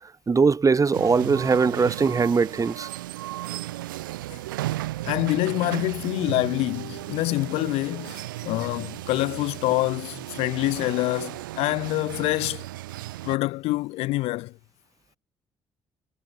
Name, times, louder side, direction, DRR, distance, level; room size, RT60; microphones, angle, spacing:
voice 1, 0.0-2.9, right 5 dB, 30° right, 1.7 m, -21 dB
sound 1, 0.9-13.4, right 16 dB, 80° right, 1.8 m, -35 dB
voice 2, 5.0-12.7 13.2-14.5, left 20 dB, 65° left, 1.2 m, -26 dB
figure-of-eight pair, 45°, 11 cm